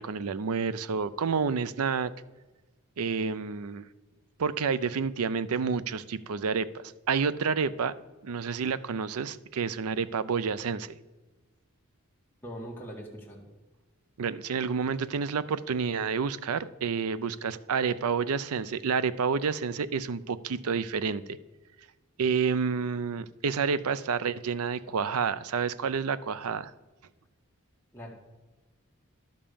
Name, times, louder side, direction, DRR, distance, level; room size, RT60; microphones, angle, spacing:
voice 1, 0.0-2.1 3.0-3.9 4.4-7.9 8.2-10.9 14.2-21.2 22.2-26.7, right 5 dB, 80° right, 15 dB, 0.5 m, -29 dB
voice 2, 12.4-13.4 27.9-28.3, equal, 10° left, -2 dB, 1.7 m, -42 dB
11.5 x 5.4 x 6.9 m, 1.2 s
head